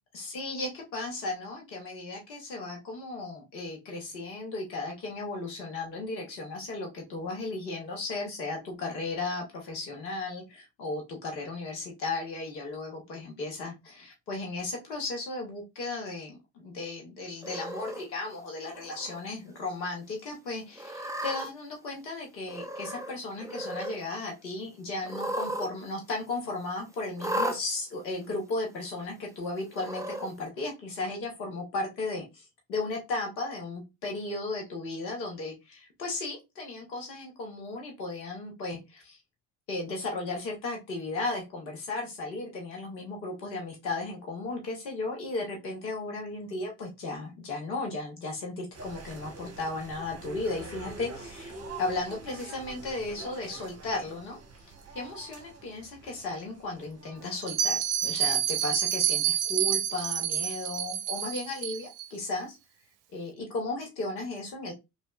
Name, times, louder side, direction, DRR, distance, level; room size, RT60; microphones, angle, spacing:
voice 1, 0.1-39.2 39.7-51.5 51.8-54.4 54.9-62.6 63.1-64.7, left 2 dB, 90° left, 1 dB, 0.9 m, -35 dB
Cat, 17.4-18.0 18.7-19.2 19.6-19.7 20.8-21.5 22.5-23.1 23.4-24.0 25.0-25.7 26.0-26.1 27.2-27.6 28.5-28.6 29.7-30.3, right 1 dB, 5° right, 0.5 m, -34 dB
sound 1, 48.7-58.2, right 3 dB, 30° right, 0.9 m, -45 dB
Bell, 57.4-62.1, right 10 dB, 60° right, 0.6 m, -28 dB
3.0 x 2.6 x 2.2 m, 0.23 s
hypercardioid pair, 40°, 49 cm